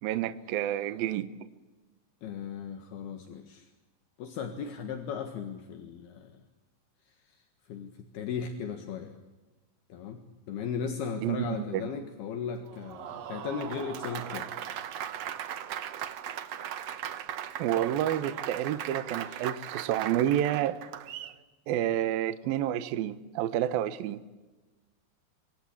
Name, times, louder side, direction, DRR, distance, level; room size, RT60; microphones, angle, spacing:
voice 1, 0.0-1.3 11.2-11.9 17.6-20.8 21.7-24.2, right 11 dB, 70° right, 12 dB, 2.6 m, -29 dB
voice 2, 2.2-3.7 4.2-6.3 7.7-9.2 9.9-10.2 10.5-14.5 19.3-19.4, left 6 dB, 70° left, 6 dB, 3.5 m, -36 dB
Applause, 12.7-21.4, right 10 dB, 90° right, 1.4 m, -38 dB
25.5 x 25.0 x 8.6 m, 1.2 s
omnidirectional pair, 4.9 m